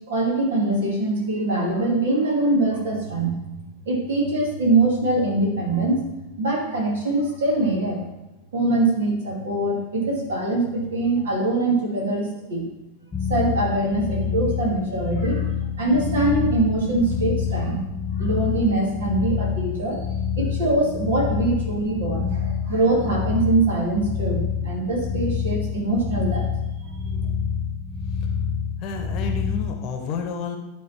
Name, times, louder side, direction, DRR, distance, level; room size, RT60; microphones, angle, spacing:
voice 1, 0.1-3.3 3.9-6.1 6.4-8.0 8.5-12.7 13.3-15.5 15.8-17.8 18.2-20.0 20.4-26.5 26.8-27.2, right 2 dB, 60° right, -1 dB, 2.3 m, -23 dB
sound 1, 13.1-29.7, left 7 dB, 20° left, 0.7 m, -27 dB
voice 2, 28.8-30.6, left 5 dB, 40° left, 4 dB, 1.0 m, -30 dB
11.5 x 4.0 x 4.3 m, 0.98 s
figure-of-eight pair, 90°, 0 cm